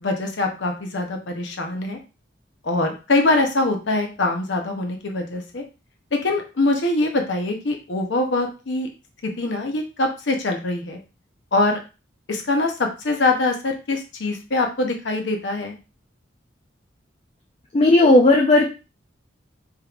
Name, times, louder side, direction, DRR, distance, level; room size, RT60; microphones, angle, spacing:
voice 1, 0.0-2.0 2.6-5.6 6.1-8.9 9.2-11.0 11.5-11.8 12.3-15.8, left 2 dB, 70° left, 3 dB, 0.7 m, -23 dB
voice 2, 17.7-18.7, left 2 dB, 35° left, -1 dB, 0.4 m, -14 dB
3.4 x 3.0 x 2.4 m, 0.31 s
head